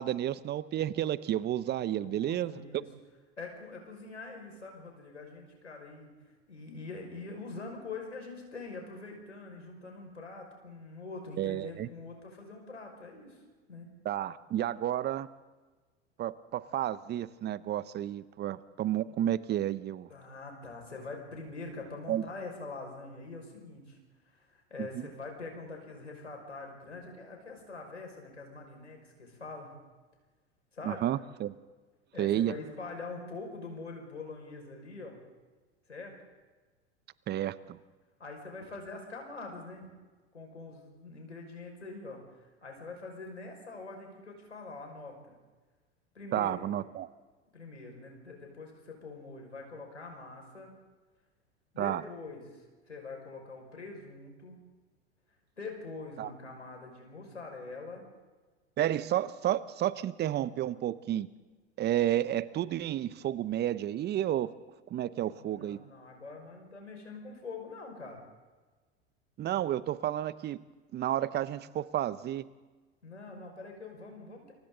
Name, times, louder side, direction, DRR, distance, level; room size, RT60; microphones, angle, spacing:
voice 1, 0.0-2.5 11.4-11.9 14.0-15.3 16.2-20.1 22.1-22.2 24.9-25.1 30.8-31.6 32.2-32.5 37.3-37.8 46.3-47.1 51.8-52.0 56.2-56.3 58.8-61.3 61.8-64.5 64.9-65.8 69.4-70.6 70.9-72.4, right 12 dB, 30° right, 17 dB, 0.9 m, -31 dB
voice 2, 2.0-2.9 3.4-6.1 6.5-13.4 13.7-13.9 20.1-24.0 24.3-29.7 30.7-31.0 32.1-35.2 35.9-36.1 38.2-39.9 40.3-45.4 46.1-46.6 47.5-50.7 51.7-54.6 55.6-58.0 65.4-68.2 73.0-74.5, left 3 dB, 90° left, 2 dB, 5.6 m, -44 dB
29.0 x 24.5 x 3.9 m, 1.3 s
figure-of-eight pair, 85°, 35 cm